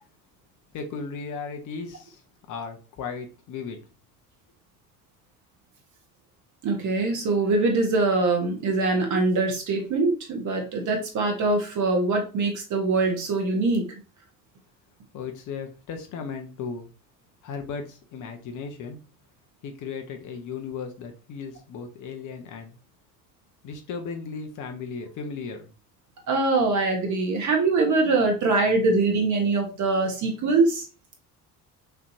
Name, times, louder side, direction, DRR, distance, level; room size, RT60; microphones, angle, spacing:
voice 1, 0.7-2.2 2.5-3.8 15.1-16.9 17.4-19.0 19.6-22.8 23.6-25.7, left 5 dB, 40° left, 4 dB, 1.0 m, -36 dB
voice 2, 6.6-13.9 26.3-30.8, right 3 dB, 40° right, 3 dB, 1.3 m, -23 dB
6.7 x 2.8 x 2.8 m, 0.33 s
figure-of-eight pair, 55°, 45 cm